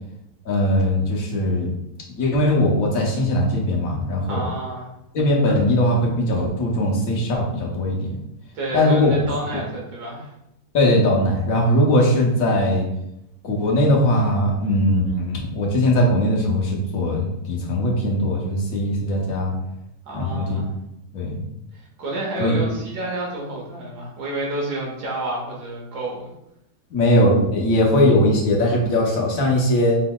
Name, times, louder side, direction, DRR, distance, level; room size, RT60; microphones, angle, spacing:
voice 1, 0.5-1.7 2.1-4.5 5.1-8.2 8.7-9.1 9.5-9.6 10.7-12.9 13.4-19.5 20.1-20.6 21.1-21.4 22.4-22.6 26.9-30.0, left 1 dB, 60° left, -1 dB, 1.3 m, -20 dB
voice 2, 4.3-4.9 8.5-10.3 20.1-20.7 21.7-26.3, right 2 dB, 80° right, -3 dB, 1.7 m, -29 dB
5.0 x 3.9 x 2.3 m, 0.83 s
omnidirectional pair, 1.7 m